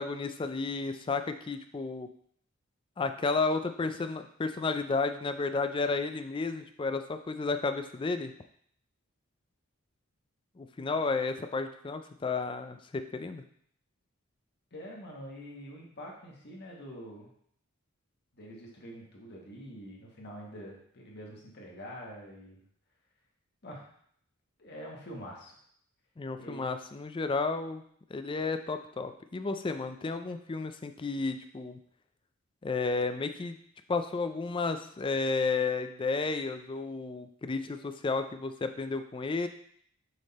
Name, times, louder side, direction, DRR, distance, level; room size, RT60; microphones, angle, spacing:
voice 1, 0.0-2.1 3.0-8.3 10.6-13.4 26.2-27.8 28.1-31.8 32.6-33.6 33.9-39.5, left 4 dB, 25° left, 8 dB, 0.3 m, -32 dB
voice 2, 14.7-17.3 18.3-22.6 23.6-23.9 24.6-25.6 26.4-26.7, equal, 50° left, -2 dB, 1.4 m, -45 dB
6.4 x 3.6 x 4.1 m, 0.65 s
head